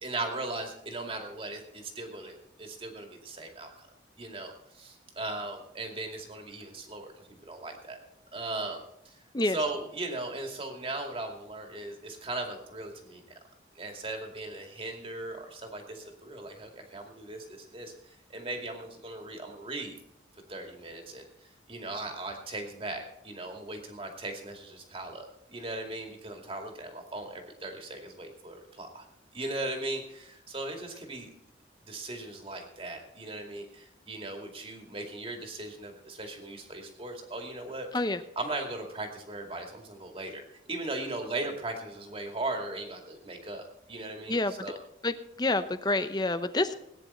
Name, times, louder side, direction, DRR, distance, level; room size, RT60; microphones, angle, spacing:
voice 1, 0.0-3.9 4.2-7.1 7.5-8.0 8.3-9.2 9.4-13.4 13.7-19.9 20.5-29.1 29.3-31.3 31.8-37.9 38.4-44.8, right 2 dB, 30° right, 3 dB, 2.4 m, -38 dB
voice 2, 45.0-46.7, left 2 dB, 20° left, 11 dB, 0.7 m, -28 dB
19.0 x 9.8 x 4.4 m, 0.81 s
head